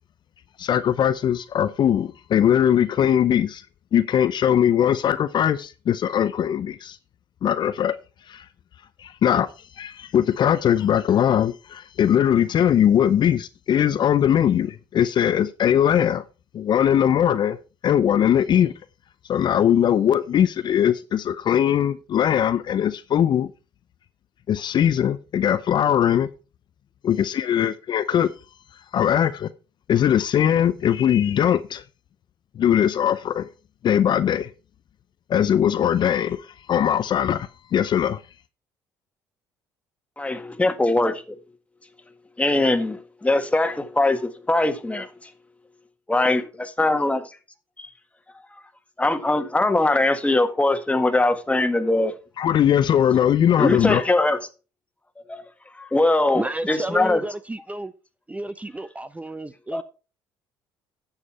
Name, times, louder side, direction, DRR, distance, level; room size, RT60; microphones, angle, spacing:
voice 1, 0.6-3.6 3.9-7.0 7.4-8.0 8.3-8.4 9.0-9.5 9.8-16.2 16.5-17.6 17.8-18.7 19.3-23.5 24.5-26.3 27.0-28.3 28.9-29.5 29.9-31.8 32.6-33.5 33.8-34.5 35.3-38.2 52.4-54.0, left 9 dB, 50° left, 0.6 m, -20 dB
voice 2, 40.2-41.4 42.4-45.1 46.1-47.3 47.8-47.9 49.0-52.1 53.6-54.4 55.3-55.4 55.8-57.2 59.7-59.8, left 2 dB, 15° left, 1.6 m, -21 dB
voice 3, 56.3-57.9 58.3-59.8, right 1 dB, 15° right, 0.7 m, -31 dB
9.8 x 7.3 x 4.4 m
hypercardioid pair, 65°, 10 cm